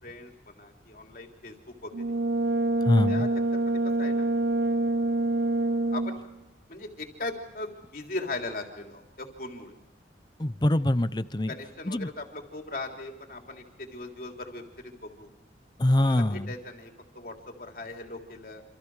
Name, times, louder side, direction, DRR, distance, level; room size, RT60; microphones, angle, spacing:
voice 1, 0.0-2.2 3.1-4.3 5.9-6.2 6.7-9.7 11.5-15.3 16.0-18.6, left 2 dB, 55° left, 2 dB, 3.5 m, -39 dB
Brass instrument, 1.9-6.3, right 2 dB, 90° right, 1.1 m, -26 dB
voice 2, 2.8-3.3 10.4-11.5 11.9-12.1 15.8-16.5, left 1 dB, 25° left, 14 dB, 0.7 m, -24 dB
27.5 x 27.0 x 4.9 m, 0.96 s
head